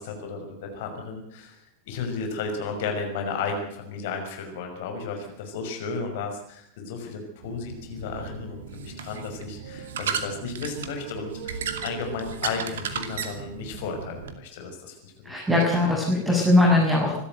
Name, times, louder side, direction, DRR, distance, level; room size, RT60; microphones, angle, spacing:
voice 1, 0.0-15.1 15.8-15.9, left 4 dB, 50° left, 4 dB, 5.9 m, -34 dB
sound 1, 7.4-14.3, right 7 dB, 60° right, 2.4 m, -35 dB
voice 2, 15.2-17.2, left 2 dB, 10° right, -3 dB, 7.3 m, -20 dB
26.0 x 13.0 x 8.0 m, 0.69 s
figure-of-eight pair, 90°, 0 cm